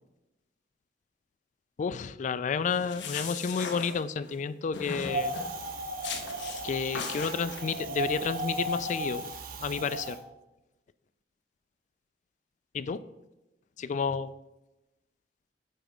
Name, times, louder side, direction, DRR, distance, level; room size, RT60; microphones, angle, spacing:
voice 1, 1.8-5.3 6.6-9.2 9.6-10.2 12.7-13.0 13.8-14.3, left 5 dB, 45° left, 15 dB, 0.3 m, -31 dB
sound 1, 2.7-4.4 4.7-5.5 6.0-6.6 6.9-7.8, left 5 dB, 85° left, 0.9 m, -38 dB
Wind, 5.1-10.2, right 1 dB, 55° right, 0.8 m, -35 dB
8.9 x 3.5 x 5.0 m, 0.99 s
head